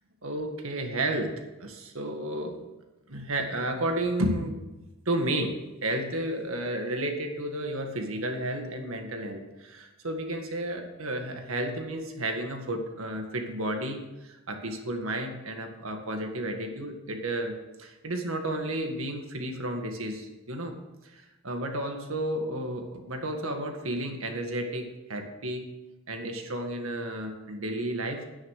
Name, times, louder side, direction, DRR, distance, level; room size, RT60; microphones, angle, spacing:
voice 1, 0.2-2.6 3.1-4.6 5.1-17.5 17.8-20.8 21.0-25.7 26.1-28.2, right 1 dB, 90° right, 5 dB, 1.7 m, -32 dB
10.0 x 9.8 x 6.5 m, 1.0 s
head